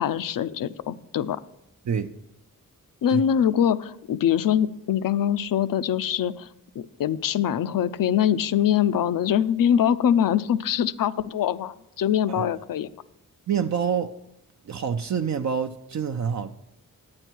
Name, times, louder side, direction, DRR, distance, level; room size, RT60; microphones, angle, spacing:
voice 1, 0.0-1.4 3.0-6.5 6.8-12.9, left 9 dB, 70° left, 15 dB, 0.5 m, -23 dB
voice 2, 13.5-14.1 14.6-16.5, right 7 dB, 50° right, 7 dB, 0.5 m, -27 dB
9.7 x 9.0 x 4.5 m, 0.81 s
cardioid pair, 80°, 35 cm